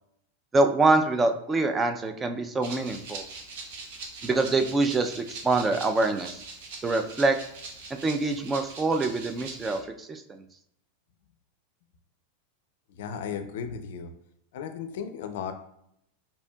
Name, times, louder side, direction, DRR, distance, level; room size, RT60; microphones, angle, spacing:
voice 1, 0.5-3.2 4.2-6.4 6.8-7.4 8.0-10.4, right 3 dB, 20° right, 6 dB, 0.4 m, -25 dB
Rattle (instrument), 2.6-9.8, right 3 dB, 65° right, 0.8 m, -42 dB
voice 2, 12.9-14.1 14.5-15.5, left 7 dB, 70° left, 8 dB, 0.4 m, -35 dB
4.3 x 2.7 x 2.3 m, 0.73 s
hypercardioid pair, 100°, 0 cm